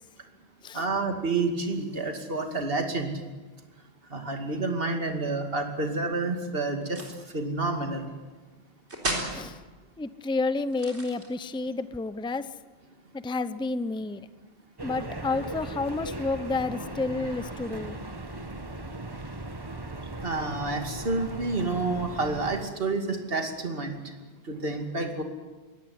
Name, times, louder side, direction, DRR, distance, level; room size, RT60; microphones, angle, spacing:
voice 1, 0.7-3.1 4.1-7.0 7.3-8.1 20.2-24.0 24.4-25.2, right 3 dB, 55° right, 4 dB, 2.7 m, -29 dB
sound 1, 6.8-7.3 8.9-9.4 10.7-11.6, right 1 dB, 80° right, 4.2 m, -33 dB
voice 2, 10.0-12.5 13.1-14.3 14.8-18.2, left 3 dB, 5° left, 13 dB, 0.5 m, -30 dB
sound 2, 14.8-22.7, right 2 dB, 20° right, 1.3 m, -38 dB
22.5 x 18.0 x 9.6 m, 1.3 s
omnidirectional pair, 1.1 m